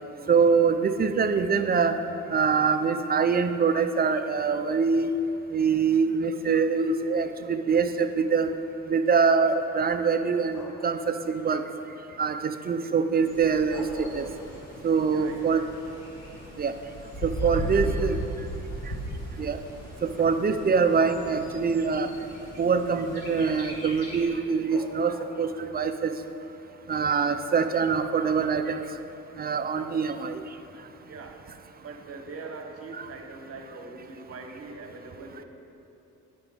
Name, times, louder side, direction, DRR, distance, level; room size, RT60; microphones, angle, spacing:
voice 1, 0.3-2.0 2.3-5.1 5.5-8.5 8.9-11.6 12.2-14.2 14.8-15.6 16.6-16.7 17.2-18.2 19.4-19.6 20.2-22.1 22.6-26.1 26.9-28.8 29.4-30.4 33.0-33.1, right 5 dB, 30° right, 8 dB, 0.5 m, -24 dB
sound 1, 10.5-11.0 13.5-14.9 15.3-15.4 16.9-17.0 17.4-18.5 19.6-19.7 20.9-21.7 24.7-25.6, left 1 dB, 70° left, 1.2 m, -43 dB
Bird, 13.2-24.3, right 1 dB, 55° left, 2.2 m, -37 dB
voice 2, 15.1-15.8 17.5-18.0 31.1-31.4 31.8-35.4, right 3 dB, 50° right, 4 dB, 1.1 m, -42 dB
9.4 x 6.0 x 5.2 m, 2.9 s
cardioid pair, 90°, 30 cm